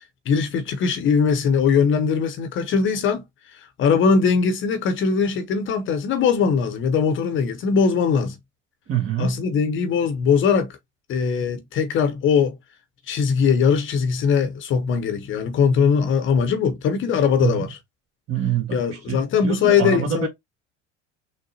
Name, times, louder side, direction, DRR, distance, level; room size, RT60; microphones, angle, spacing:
voice 1, 0.3-3.2 3.5-8.4 9.2-10.7 11.1-12.6 13.1-17.8 18.7-20.3, left 6 dB, 35° left, 0.8 m, -20 dB
voice 2, 8.9-9.4 17.4-17.7 18.3-20.3, right 9 dB, 40° right, 1.5 m, -26 dB
6.1 x 2.1 x 2.7 m
figure-of-eight pair, 70°, 36 cm